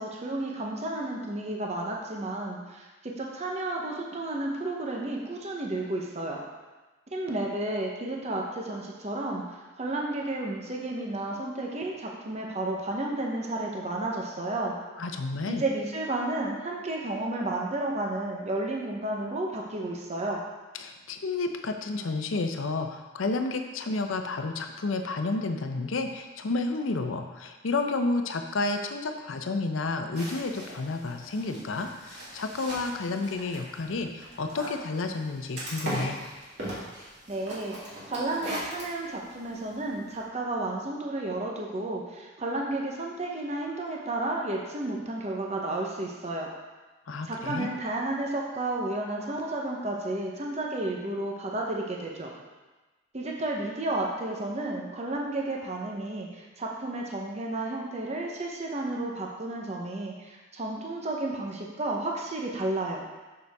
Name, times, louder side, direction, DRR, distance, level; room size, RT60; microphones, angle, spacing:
voice 1, 0.0-6.4 7.1-14.8 15.5-20.4 37.3-46.5 47.2-52.4 53.1-63.0, right 2 dB, 35° right, -1 dB, 0.8 m, -32 dB
voice 2, 15.0-15.6 20.8-36.2 47.1-47.7, left 3 dB, 80° left, 6 dB, 0.6 m, -31 dB
sound 1, 30.1-40.2, right 1 dB, 55° right, 2.4 m, -40 dB
6.7 x 6.6 x 3.5 m, 1.2 s
head